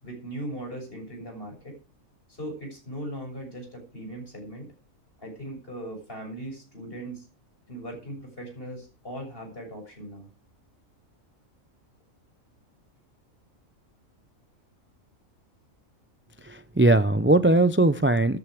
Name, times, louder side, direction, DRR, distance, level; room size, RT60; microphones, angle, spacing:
voice 1, 0.0-1.7 2.3-4.7 5.2-7.3 7.7-10.3, right 1 dB, 40° left, 2 dB, 7.2 m, -38 dB
voice 2, 16.4-18.4, right 2 dB, 15° right, 13 dB, 0.3 m, -20 dB
13.5 x 11.0 x 5.0 m, 0.36 s
omnidirectional pair, 1.4 m